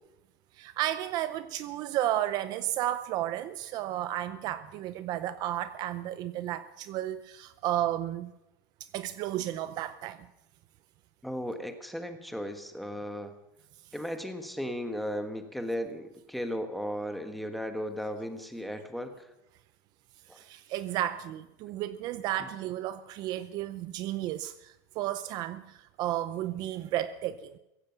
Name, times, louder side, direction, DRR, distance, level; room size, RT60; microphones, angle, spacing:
voice 1, 0.5-8.3 8.9-10.3 20.3-27.6, right 13 dB, 45° right, 0.6 m, -33 dB
voice 2, 11.2-13.3 13.9-19.1 20.3-20.4 22.4-22.5, equal, ahead, 1.4 m, -36 dB
16.0 x 15.5 x 5.8 m
supercardioid pair, 155°, 10 cm